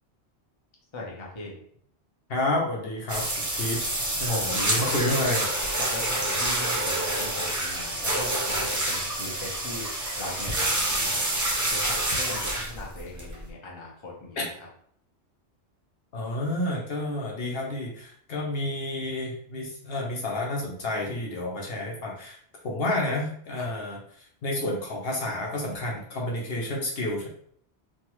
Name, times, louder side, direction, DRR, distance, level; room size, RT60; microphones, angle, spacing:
voice 1, 0.9-1.6 4.3-5.3 5.8-11.3 11.7-14.7 23.6-23.7, left 2 dB, 30° left, -3 dB, 0.7 m, -38 dB
voice 2, 2.3-3.3 3.5-3.8 4.2-5.5 14.4-14.5 16.1-22.4 22.6-27.3, left 1 dB, 65° left, -2 dB, 0.9 m, -30 dB
sound 1, 3.1-13.5, right 1 dB, 25° right, 0.5 m, -28 dB
3.2 x 2.3 x 3.0 m, 0.63 s
omnidirectional pair, 1.2 m